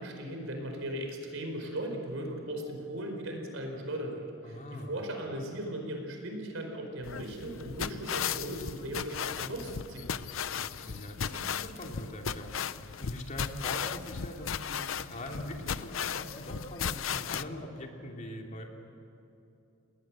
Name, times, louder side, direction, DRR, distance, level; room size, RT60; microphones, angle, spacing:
voice 1, 0.0-10.1, right 1 dB, 75° right, 3 dB, 4.8 m, -38 dB
voice 2, 4.4-4.9 10.6-18.7, left 1 dB, 40° left, 1 dB, 2.9 m, -42 dB
sound 1, 7.0-17.4, left 7 dB, 70° left, 0.6 m, -36 dB
29.5 x 19.5 x 7.6 m, 2.8 s
head